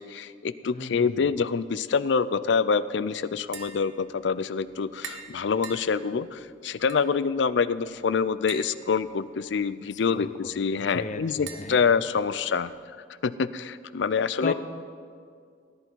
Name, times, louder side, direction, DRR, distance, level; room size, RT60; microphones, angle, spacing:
voice 1, 0.0-12.7 13.2-14.5, left 5 dB, 70° left, 16 dB, 0.4 m, -26 dB
voice 2, 0.6-1.3 10.1-10.3 10.8-11.8 14.4-14.5, left 3 dB, 40° left, 10 dB, 0.7 m, -35 dB
Tap, 3.4-12.8, right 6 dB, 80° right, 1.0 m, -48 dB
17.5 x 10.5 x 4.6 m, 2.2 s
head